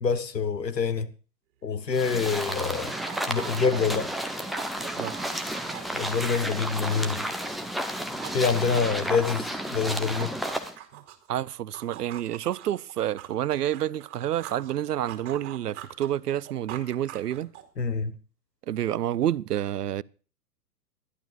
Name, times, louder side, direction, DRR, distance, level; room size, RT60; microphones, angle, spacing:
voice 1, 0.0-1.1 1.6-3.0 3.3-4.1 5.9-7.2 8.3-10.3 17.8-18.1, left 5 dB, 85° left, 1.3 m, -26 dB
sound 1, 1.7-7.5 7.8-11.3 11.7-14.7 15.1-17.8, right 12 dB, 45° right, 2.8 m, -44 dB
sound 2, 1.9-10.7, equal, ahead, 0.6 m, -32 dB
voice 2, 4.8-5.1 10.9-11.0 11.3-17.5 18.7-20.0, right 11 dB, 70° right, 0.6 m, -29 dB
25.5 x 11.5 x 2.4 m
figure-of-eight pair, 115°, 48 cm